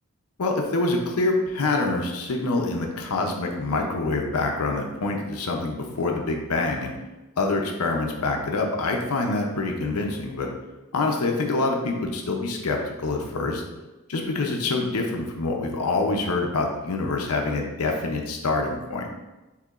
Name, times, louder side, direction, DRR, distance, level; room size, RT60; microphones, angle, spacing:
voice 1, 0.4-6.9 7.4-10.5 10.9-13.6 14.1-19.1, left 3 dB, 90° left, 1 dB, 0.6 m, -26 dB
6.7 x 2.8 x 2.4 m, 1.1 s
head